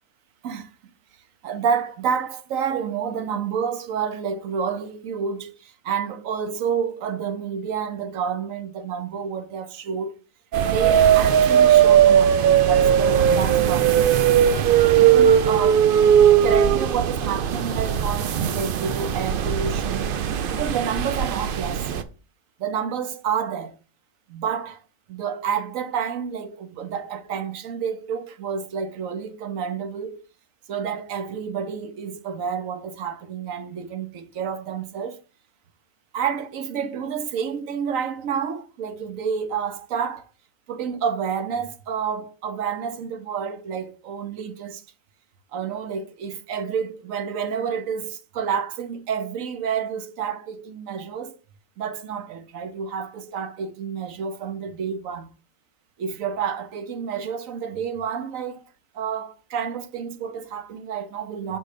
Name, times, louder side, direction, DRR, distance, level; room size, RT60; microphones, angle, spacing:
voice 1, 1.4-10.2 10.6-14.3 14.9-15.8 16.4-21.9 22.6-23.8 24.3-24.8 25.1-30.2 30.7-35.2 36.1-40.3 40.7-44.8 45.5-51.4 51.8-55.3 56.0-58.7 58.9-61.6, right 7 dB, 65° right, 1.1 m, -29 dB
sound 1, 10.5-22.0, right 9 dB, 85° right, 0.4 m, -18 dB
6.6 x 3.9 x 4.9 m
omnidirectional pair, 1.6 m